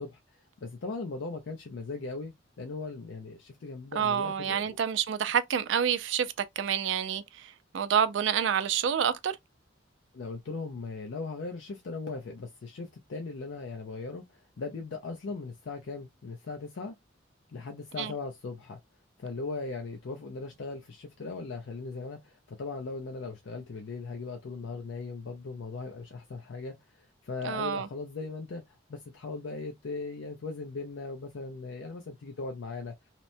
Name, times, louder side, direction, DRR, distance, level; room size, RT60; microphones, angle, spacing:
voice 1, 0.0-4.8 10.1-17.0 17.5-18.8 19.2-32.9, left 3 dB, 70° left, 0.5 m, -39 dB
voice 2, 4.0-9.4 18.0-18.1 27.4-27.9, right 8 dB, 70° right, 0.4 m, -28 dB
2.9 x 2.1 x 2.6 m
head